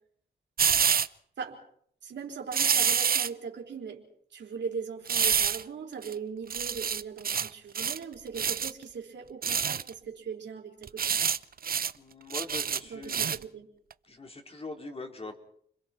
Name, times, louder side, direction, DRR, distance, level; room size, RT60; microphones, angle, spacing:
sound 1, 0.6-1.1 2.5-3.3 5.1-5.6 6.0-6.1 6.5-7.5 7.7-8.0 8.4-8.7 9.4-9.9 10.8-11.4 11.6-11.9 12.3-13.4 13.9-14.0, right 7 dB, 55° right, 0.8 m, -27 dB
voice 1, 2.0-11.2 12.9-13.7, right 6 dB, 80° right, 2 dB, 4.1 m, -40 dB
voice 2, 11.9-13.3 14.0-15.4, left 2 dB, 35° left, 3 dB, 4.3 m, -42 dB
30.0 x 22.0 x 4.5 m, 0.65 s
cardioid pair, 60°, 18 cm